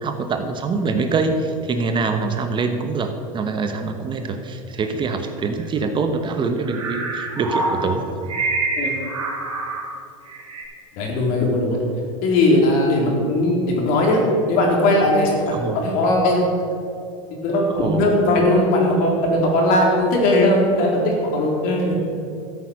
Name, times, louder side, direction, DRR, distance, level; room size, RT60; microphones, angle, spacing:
voice 1, 0.0-8.1 13.1-13.3 15.5-15.8 17.7-18.0, right 4 dB, 30° right, 7 dB, 1.1 m, -24 dB
sound 1, 6.6-9.9 10.3-10.6, right 3 dB, 90° right, 3.0 m, -26 dB
voice 2, 11.0-11.8 12.2-14.2 14.5-16.4 17.4-21.9, left 1 dB, 55° left, -1 dB, 3.8 m, -18 dB
13.5 x 8.5 x 6.4 m, 2.5 s
hypercardioid pair, 110°, 17 cm